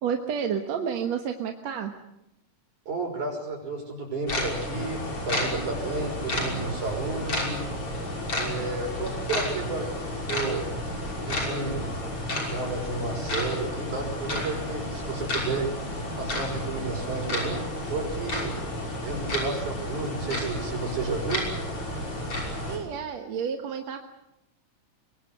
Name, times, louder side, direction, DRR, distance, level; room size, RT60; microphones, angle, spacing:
voice 1, 0.0-1.9 22.7-24.2, right 7 dB, 65° right, 4 dB, 2.5 m, -30 dB
voice 2, 2.9-7.7 8.4-10.7 11.2-11.8 12.4-15.7 16.2-17.6 17.9-18.6 19.0-21.5, right 3 dB, 85° right, 2 dB, 7.5 m, -32 dB
sound 1, 4.3-22.8, left 1 dB, 45° left, 7.0 m, -31 dB
24.0 x 23.0 x 8.1 m, 0.85 s
omnidirectional pair, 3.4 m